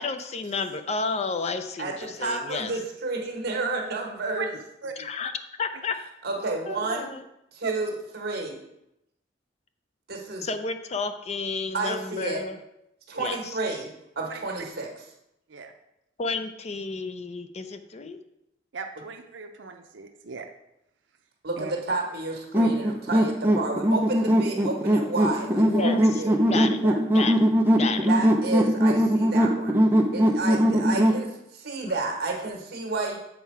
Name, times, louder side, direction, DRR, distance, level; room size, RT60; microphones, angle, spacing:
voice 1, 0.0-2.7 5.0-5.3 5.6-6.0 6.7-7.2 10.4-12.6 13.2-13.4 16.2-18.2 25.6-26.2 26.5-26.8 27.1-27.4 27.8-28.1 31.8-31.9, left 4 dB, 35° left, 9 dB, 0.5 m, -31 dB
voice 2, 1.8-4.5 6.2-7.1 7.5-8.6 10.1-10.5 11.7-12.4 13.1-13.9 14.1-15.0 21.4-26.4 26.8-26.9 28.1-29.8 30.1-33.2, right 3 dB, 60° right, 0 dB, 1.5 m, -31 dB
voice 3, 18.7-20.5 21.6-21.7, right 5 dB, 80° right, 4 dB, 0.6 m, -37 dB
sound 1, 22.5-31.2, equal, 10° right, 0.6 m, -21 dB
7.3 x 4.6 x 4.6 m, 0.84 s
head